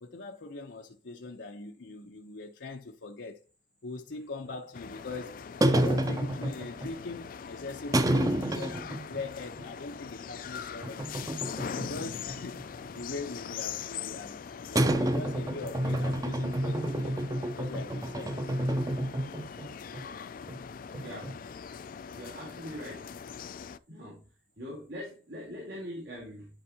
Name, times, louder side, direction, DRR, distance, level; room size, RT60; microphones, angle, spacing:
voice 1, 0.0-3.4 3.8-11.3 11.7-17.2 17.6-18.4, left 3 dB, 85° left, 0.8 m, -41 dB
sound 1, 4.5-4.6 5.6-6.9 7.9-9.2 9.6-9.7 10.8-12.1 12.4-13.3 14.8-19.7 19.9-20.0 20.5-20.6 20.9-21.5, right 1 dB, 20° right, 0.6 m, -29 dB
sound 2, 4.7-23.8, left 7 dB, 50° left, 0.4 m, -42 dB
voice 2, 21.0-21.4 22.1-23.1 23.9-24.3 24.6-26.5, equal, 80° right, 3.8 m, -42 dB
11.5 x 4.6 x 2.8 m
head